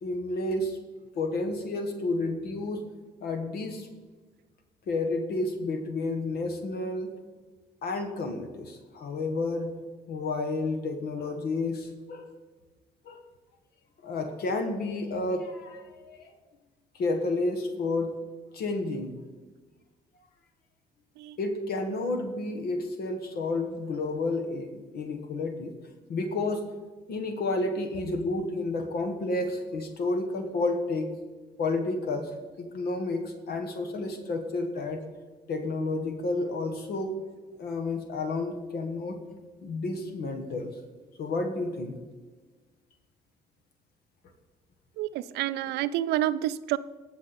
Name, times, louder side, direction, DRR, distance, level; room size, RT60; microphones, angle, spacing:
voice 1, 0.0-0.8 1.1-2.8 3.2-3.9 4.9-7.1 7.8-9.7 10.1-12.2 13.1-13.2 14.0-16.2 17.0-18.1 18.5-19.1 21.4-25.7 26.1-26.6 27.1-31.1 31.6-32.3 32.6-35.0 35.5-37.1 37.6-39.2 39.6-40.7 41.2-42.0, left 2 dB, 65° left, 5 dB, 1.3 m, -30 dB
voice 2, 45.0-46.8, right 13 dB, 80° right, 16 dB, 0.4 m, -28 dB
16.5 x 6.3 x 4.1 m, 1.3 s
supercardioid pair, 70°, 17 cm